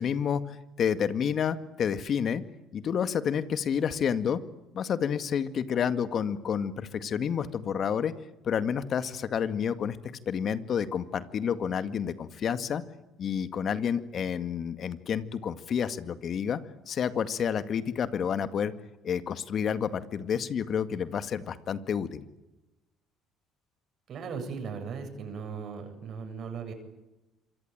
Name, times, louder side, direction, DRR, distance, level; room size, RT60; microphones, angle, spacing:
voice 1, 0.0-2.4 2.7-4.4 4.7-8.1 8.4-10.0 10.3-12.8 13.2-16.6 16.9-18.7 19.0-22.2, left 7 dB, 55° left, 11 dB, 2.0 m, -29 dB
voice 2, 24.1-26.7, right 5 dB, 55° right, 7 dB, 8.0 m, -37 dB
26.5 x 24.5 x 9.0 m, 1.0 s
supercardioid pair, 75°, 0 cm